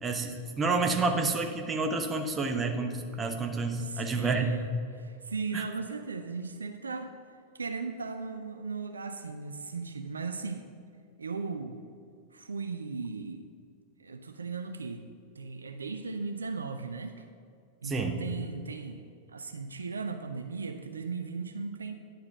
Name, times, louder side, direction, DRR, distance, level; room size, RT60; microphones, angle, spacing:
voice 1, 0.0-4.5 5.5-5.6 17.8-18.2, right 3 dB, 20° right, 4 dB, 0.9 m, -29 dB
voice 2, 3.8-7.1 7.5-10.7 11.2-11.8 12.3-13.5 14.0-15.1 15.4-17.2 17.8-19.0 19.3-21.9, right 4 dB, 75° right, 7 dB, 0.5 m, -37 dB
10.5 x 4.8 x 6.0 m, 2.3 s
figure-of-eight pair, 90°, 0 cm